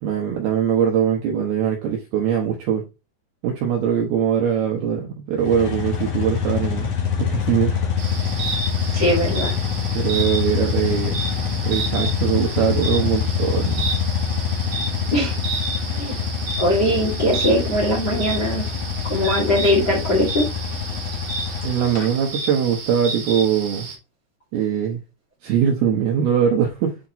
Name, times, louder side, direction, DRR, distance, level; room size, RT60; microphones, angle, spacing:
voice 1, 0.0-2.8 3.4-6.9 7.2-7.7 9.9-11.3 11.6-13.9 21.6-23.9 24.5-25.0 25.4-27.0, right 8 dB, 75° right, 2.4 m, -21 dB
sound 1, 5.4-22.1, left 7 dB, 70° left, 1.4 m, -25 dB
sound 2, 8.0-23.9, right 4 dB, 40° right, 3.2 m, -31 dB
voice 2, 8.9-9.5 15.1-15.3 15.9-16.1 16.6-18.6 19.1-20.4, left 1 dB, 35° left, 1.7 m, -20 dB
8.4 x 4.4 x 3.0 m
omnidirectional pair, 5.8 m